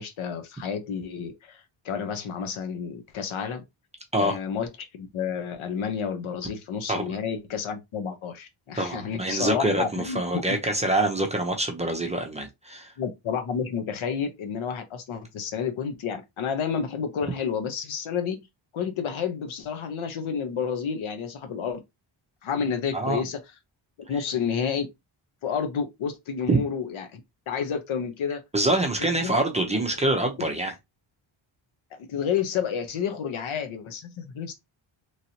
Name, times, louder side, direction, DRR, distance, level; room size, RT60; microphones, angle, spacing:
voice 1, 0.0-3.6 4.2-4.7 4.9-10.6 13.0-18.4 18.7-21.8 22.4-23.4 24.1-24.9 25.4-27.2 27.5-28.4 29.2-29.4 32.1-34.5, left 7 dB, 75° left, 0.9 m, -30 dB
voice 2, 8.8-12.9 22.9-23.2 26.5-26.6 28.5-30.7, right 2 dB, 15° right, 0.6 m, -25 dB
3.1 x 2.7 x 2.8 m
wide cardioid pair, 135°, 49 cm